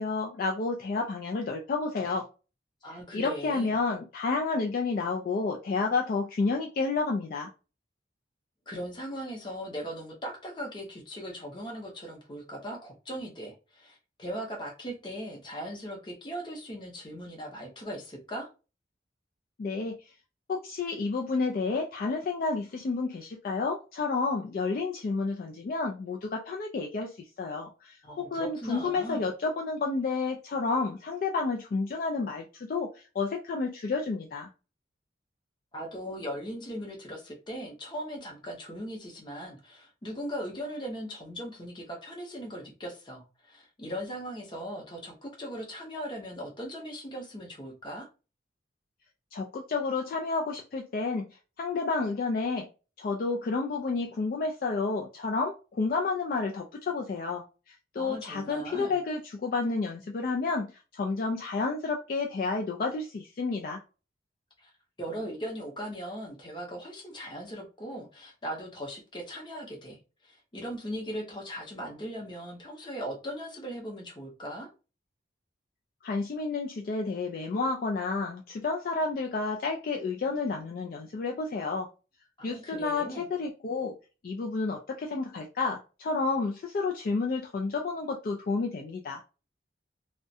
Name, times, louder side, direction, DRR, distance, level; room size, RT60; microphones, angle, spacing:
voice 1, 0.0-2.2 3.1-7.5 19.6-20.0 20.5-27.1 27.4-34.5 49.3-51.3 51.6-52.7 53.0-63.8 76.0-81.9 82.4-83.9 84.2-89.2, left 4 dB, 50° left, 0.3 m, -30 dB
voice 2, 2.8-3.7 8.7-18.5 28.0-29.3 35.7-48.1 57.9-58.9 64.6-64.7 65.0-70.0 70.2-74.7 82.4-83.3, equal, 25° left, 0.7 m, -39 dB
2.3 x 2.1 x 2.6 m
head